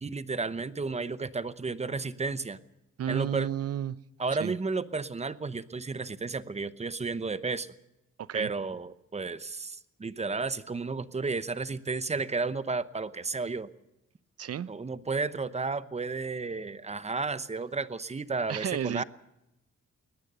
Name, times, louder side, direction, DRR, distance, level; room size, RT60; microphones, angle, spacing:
voice 1, 0.0-2.6 3.1-3.5 4.2-7.7 8.3-13.7 14.7-19.0, right 4 dB, 20° right, 0.9 m, -32 dB
voice 2, 3.0-4.0 4.4-4.5 8.2-8.5 14.4-14.7 18.5-19.0, right 9 dB, 55° right, 0.7 m, -32 dB
21.5 x 19.5 x 6.7 m
wide cardioid pair, 140°, 29 cm